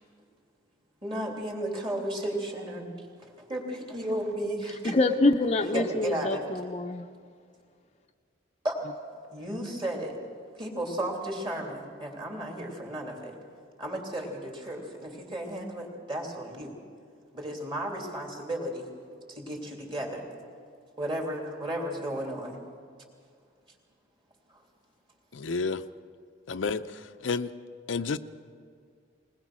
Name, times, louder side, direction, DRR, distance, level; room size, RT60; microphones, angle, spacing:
voice 1, 1.0-4.9 5.6-6.4 8.6-8.8 9.3-10.2 10.6-13.4 13.8-16.8 17.3-18.9 19.3-20.3 21.0-22.6 24.5-24.6, right 1 dB, 25° right, 1 dB, 3.1 m, -34 dB
voice 2, 4.8-7.0, left 2 dB, 35° left, 6 dB, 0.6 m, -25 dB
voice 3, 25.3-25.8 26.5-27.5 27.9-28.2, left 4 dB, 90° left, 9 dB, 0.6 m, -30 dB
21.0 x 20.0 x 6.2 m, 2.2 s
head